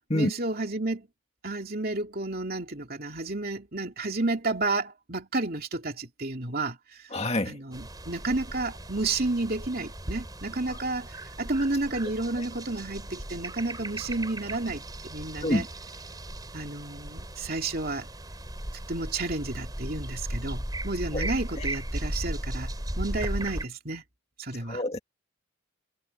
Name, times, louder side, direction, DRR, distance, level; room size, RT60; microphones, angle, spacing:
voice 1, 0.1-1.1 1.4-7.1 7.4-15.7 16.5-18.1 18.9-24.0 24.4-24.8, right 2 dB, 45° right, 2.9 m, -31 dB
voice 2, 7.1-7.6 10.7-10.8 12.4-12.5 15.4-15.7 21.1-21.3 21.6-21.7 24.6-25.0, left 1 dB, 30° left, 2.2 m, -27 dB
sound 1, 7.7-23.6, right 1 dB, 20° right, 4.4 m, -36 dB
head